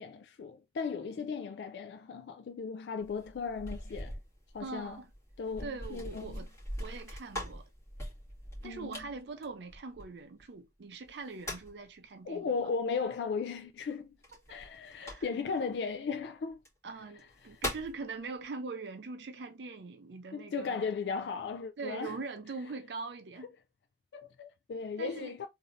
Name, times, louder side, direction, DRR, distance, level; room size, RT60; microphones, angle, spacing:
voice 1, 0.0-4.2 4.5-5.0 5.4-6.4 8.6-9.0 12.3-14.1 14.5-16.6 20.3-22.2 24.1-25.5, left 5 dB, 70° left, 0.3 m, -36 dB
sound 1, 3.0-10.4 11.1-11.9 14.2-15.6 16.5-16.7 17.2-18.0, left 1 dB, 15° left, 1.9 m, -42 dB
voice 2, 4.6-5.1 5.6-6.5 6.8-7.6 8.6-12.5 14.5-14.6 15.0-15.3 16.8-20.9 21.8-23.5 25.0-25.3, right 4 dB, 70° right, 0.5 m, -42 dB
3.7 x 2.6 x 3.1 m
head